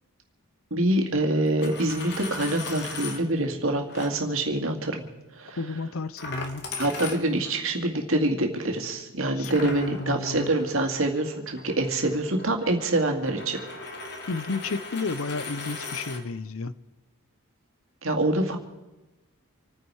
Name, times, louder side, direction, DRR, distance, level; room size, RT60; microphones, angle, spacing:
voice 1, 0.7-5.0 5.4-5.6 6.8-13.6 18.0-18.6, right 1 dB, 60° right, 2.2 m, -25 dB
Coin (dropping), 1.5-3.2 3.9-4.1 6.2-7.6 9.4-16.2, left 3 dB, 50° left, 2.1 m, -38 dB
voice 2, 5.6-6.7 9.4-10.5 14.3-16.7, left 3 dB, 65° left, 0.7 m, -32 dB
27.5 x 9.9 x 4.8 m
head